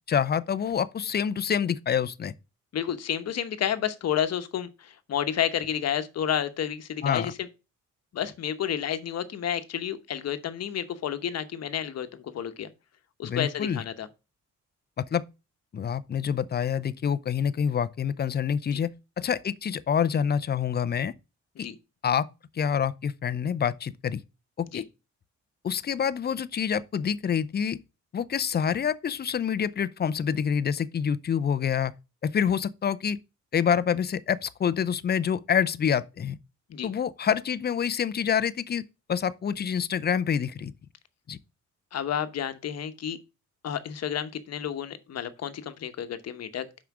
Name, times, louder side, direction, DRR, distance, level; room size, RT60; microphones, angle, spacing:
voice 1, 0.1-2.3 7.0-7.3 13.2-13.8 15.0-15.2 15.7-18.9 19.2-21.1 22.0-22.3 22.5-24.2 24.6-24.8 25.6-27.8 28.1-31.9 32.2-33.2 33.5-36.4 36.8-38.8 39.1-40.7 41.3-41.4, left 7 dB, 35° left, 0.5 m, -27 dB
voice 2, 2.7-7.3 8.1-12.7 13.2-14.1 18.7-18.8 21.6-21.7 24.7-24.8 36.7-36.9 41.9-43.2 43.6-46.7, left 9 dB, 55° left, 1.0 m, -30 dB
5.8 x 4.9 x 6.0 m
cardioid pair, 90°, 30 cm